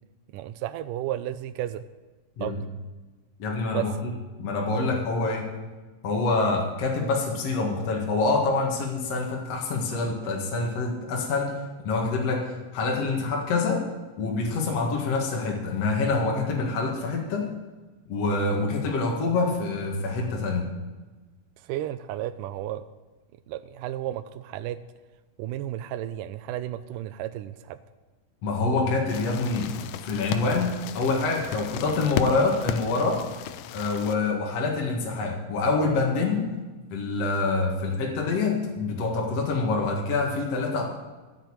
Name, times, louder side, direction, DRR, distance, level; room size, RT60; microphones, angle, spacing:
voice 1, 0.3-1.8 2.4-2.5 3.7-3.9 21.7-22.8 23.5-24.8 25.4-27.8, right 13 dB, 80° right, 11 dB, 2.1 m, -33 dB
voice 2, 3.4-4.1 4.4-5.5 6.0-11.5 11.8-12.4 12.7-13.8 14.2-17.5 18.1-20.7 28.4-29.7 30.0-33.2 33.7-36.5 36.9-40.8, left 3 dB, 50° left, -1 dB, 2.8 m, -26 dB
sound 1, 29.1-34.2, left 10 dB, 90° left, 1.5 m, -35 dB
13.0 x 6.8 x 8.9 m, 1.3 s
omnidirectional pair, 3.9 m